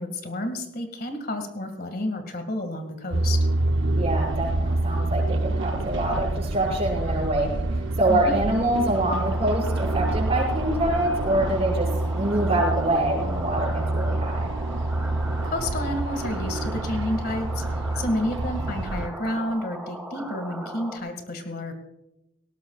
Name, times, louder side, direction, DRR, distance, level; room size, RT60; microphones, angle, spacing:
voice 1, 0.0-3.4 8.1-8.3 15.4-21.7, left 1 dB, 50° left, 6 dB, 2.1 m, -30 dB
sound 1, 3.1-19.1, right 2 dB, 75° right, 0.7 m, -27 dB
voice 2, 4.0-14.5, right 1 dB, 30° right, -3 dB, 6.3 m, -25 dB
sound 2, 9.1-21.0, right 1 dB, 10° right, 1.9 m, -38 dB
19.0 x 18.0 x 2.4 m, 0.91 s
head